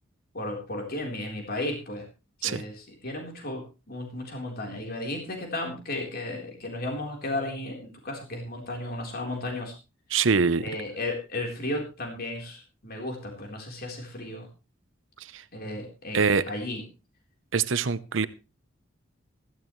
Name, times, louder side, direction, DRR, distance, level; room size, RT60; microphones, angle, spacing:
voice 1, 0.3-2.1 2.4-9.8 10.6-14.5 15.5-16.8, left 1 dB, 50° left, 2 dB, 4.0 m, -34 dB
voice 2, 10.1-10.7 15.2-15.4 16.1-16.4 17.5-18.3, right 5 dB, 75° right, 16 dB, 0.8 m, -24 dB
16.0 x 14.5 x 3.2 m, 0.31 s
head